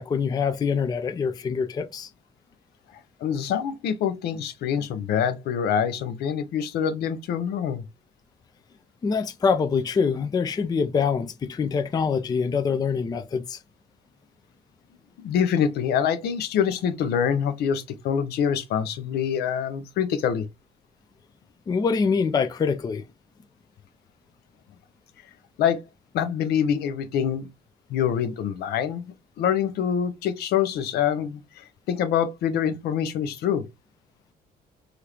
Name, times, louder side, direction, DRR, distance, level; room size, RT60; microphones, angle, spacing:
voice 1, 0.0-2.1 9.0-13.6 21.7-23.0, left 5 dB, 25° left, 0.4 m, -25 dB
voice 2, 3.2-7.8 15.2-20.5 25.6-25.8 26.1-27.5 27.9-29.0 29.4-33.6, left 8 dB, 70° left, 0.6 m, -25 dB
2.9 x 2.5 x 3.3 m
cardioid pair, 110°, 17 cm